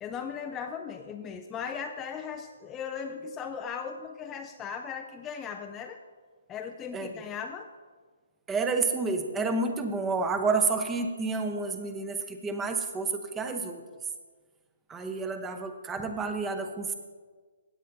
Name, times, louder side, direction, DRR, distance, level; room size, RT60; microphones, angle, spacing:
voice 1, 0.0-6.0 6.5-7.7, left 6 dB, 15° left, 5 dB, 0.4 m, -37 dB
voice 2, 8.5-13.8 14.9-16.9, right 4 dB, 10° right, 7 dB, 0.8 m, -30 dB
16.5 x 8.5 x 2.6 m, 1.5 s
figure-of-eight pair, 130°, 0 cm